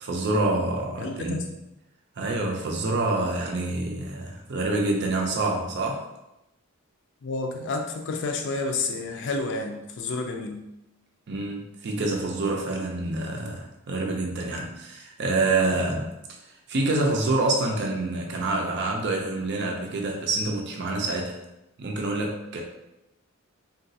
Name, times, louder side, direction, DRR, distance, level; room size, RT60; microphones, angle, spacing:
voice 1, 0.0-1.4 2.2-6.1 11.3-16.1 16.7-21.4 21.8-22.6, right 2 dB, 50° right, 1 dB, 0.4 m, -27 dB
voice 2, 1.0-1.6 7.2-10.6, left 3 dB, 55° left, 4 dB, 0.4 m, -30 dB
3.7 x 2.3 x 2.6 m, 0.90 s
head